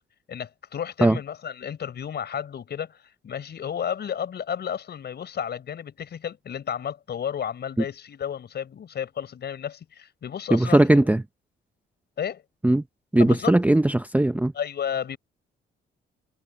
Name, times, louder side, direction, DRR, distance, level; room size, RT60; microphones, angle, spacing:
voice 1, 0.3-10.9 12.2-12.4 13.2-13.6 14.5-15.2, left 8 dB, 55° left, 4.8 m, -32 dB
voice 2, 10.5-11.2 12.6-12.8 13.1-14.5, right 1 dB, 5° right, 0.7 m, -19 dB
cardioid pair, 90°, 20 cm